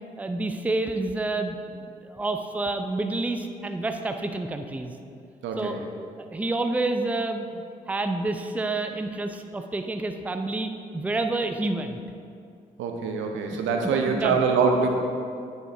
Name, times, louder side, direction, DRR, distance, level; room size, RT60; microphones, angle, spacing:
voice 1, 0.2-4.9 5.6-5.7 6.3-12.0 13.5-14.4, right 2 dB, 5° right, 6 dB, 0.5 m, -29 dB
voice 2, 5.4-5.8 12.8-14.9, right 5 dB, 65° right, 3 dB, 0.8 m, -24 dB
9.6 x 4.6 x 3.4 m, 2.4 s
hypercardioid pair, 40°, 21 cm